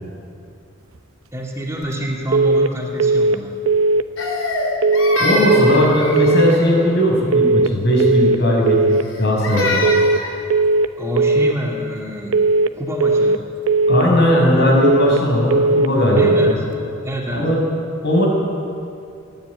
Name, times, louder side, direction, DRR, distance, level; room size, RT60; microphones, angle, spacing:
voice 1, 1.3-3.5 11.0-12.4 12.7-13.4 16.1-16.5 17.0-17.4, right 1 dB, 15° right, -1 dB, 2.0 m, -27 dB
sound 1, 2.3-2.7 3.0-3.4 3.7-4.1 4.8-5.2 5.5-5.9 6.2-6.6 7.3-7.7 8.0-8.4 8.7-9.1 9.8-10.2 10.5-10.9 11.2-11.6 12.3-12.7 13.0-13.4 13.7-14.1 14.8-15.2 15.5-15.9 16.2-16.6, right 3 dB, 80° right, 0.8 m, -16 dB
Crying sobbing, 4.2-6.7 8.9-10.4, left 1 dB, 75° left, 3.5 m, -24 dB
voice 2, 5.2-10.0 13.9-16.6 17.3-17.6 18.0-18.3, equal, 55° left, -1 dB, 5.9 m, -17 dB
28.0 x 10.5 x 9.6 m, 2.5 s
head